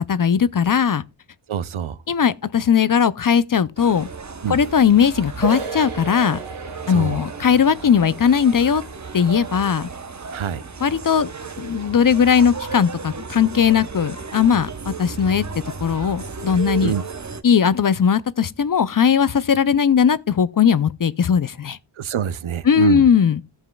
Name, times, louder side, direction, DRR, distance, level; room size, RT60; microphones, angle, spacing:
voice 1, 0.1-1.0 2.1-4.1 4.5-6.4 6.9-8.8 9.1-9.9 10.8-11.3 11.6-15.5 15.8-16.9 17.4-21.8 22.7-23.4, left 7 dB, 45° left, 0.4 m, -18 dB
voice 2, 1.5-2.0 4.4-4.6 6.9-7.2 10.3-10.6 16.8-17.0 22.0-23.1, right 8 dB, 70° right, 0.6 m, -25 dB
sound 1, 3.8-17.4, right 5 dB, 35° right, 0.8 m, -34 dB
sound 2, 5.4-10.9, right 5 dB, 85° right, 2.4 m, -35 dB
14.0 x 7.3 x 2.2 m
wide cardioid pair, 50°, 49 cm